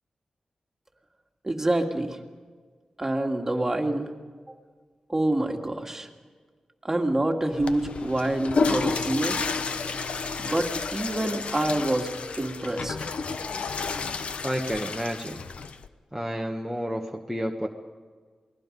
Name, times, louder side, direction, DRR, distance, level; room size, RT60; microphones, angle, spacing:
voice 1, 1.4-2.2 3.0-4.1 5.1-6.1 6.8-9.4 10.4-12.1 12.4-13.0, right 1 dB, 20° right, 3 dB, 2.1 m, -27 dB
Water / Toilet flush, 7.5-15.9, left 4 dB, 70° left, 1.0 m, -31 dB
voice 2, 14.4-15.4 16.1-17.7, equal, ahead, 2 dB, 1.2 m, -30 dB
28.0 x 20.0 x 5.3 m, 1.5 s
wide cardioid pair, 110°, 2 cm